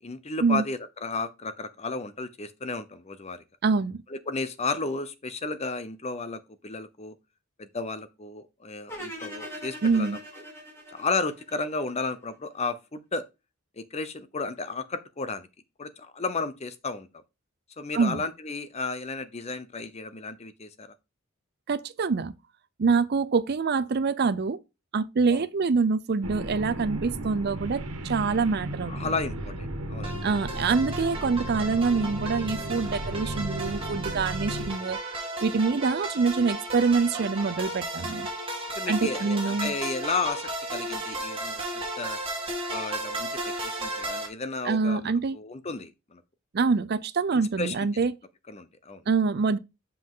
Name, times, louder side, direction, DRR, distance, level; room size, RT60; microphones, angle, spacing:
voice 1, 0.0-3.4 4.1-7.1 7.6-10.2 10.9-13.2 13.8-15.5 15.8-17.1 17.8-20.9 25.3-25.4 28.9-30.1 38.7-41.6 42.0-42.2 42.7-46.2 47.3-47.9 48.5-49.0, left 3 dB, 30° left, 0.7 m, -33 dB
voice 2, 3.6-4.0 9.8-10.2 17.9-18.2 21.7-22.3 22.8-24.6 24.9-29.1 30.2-35.0 35.4-38.3 38.9-39.7 44.6-45.4 46.5-48.1 49.1-49.6, right 4 dB, 45° right, 0.5 m, -25 dB
sound 1, 8.9-12.0, equal, 10° left, 3.6 m, -41 dB
sound 2, 26.2-34.7, right 1 dB, 90° right, 1.5 m, -35 dB
sound 3, 30.0-44.3, right 1 dB, 25° right, 2.4 m, -34 dB
7.5 x 5.7 x 3.7 m
head